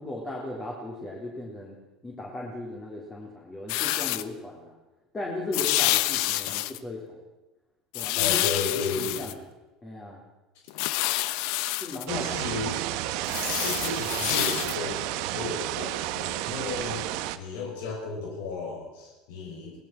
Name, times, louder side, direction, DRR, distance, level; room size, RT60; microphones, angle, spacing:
voice 1, 0.0-1.8 2.0-4.8 5.1-7.2 7.9-8.4 8.9-9.4 9.8-10.2 11.8-12.3, left 2 dB, 15° left, -2 dB, 3.9 m, -37 dB
sound 1, 3.7-4.2 5.5-6.8 7.9-9.3 10.7-12.1 13.2-14.8, left 16 dB, 65° left, 0.9 m, -27 dB
voice 2, 8.2-9.3 12.1-12.8 13.6-15.0 15.3-19.8, left 4 dB, 90° left, 0 dB, 6.9 m, -34 dB
sound 2, 12.1-17.4, right 15 dB, 65° right, 1.3 m, -31 dB
24.0 x 19.0 x 6.1 m, 1.1 s
cardioid pair, 160°, 0 cm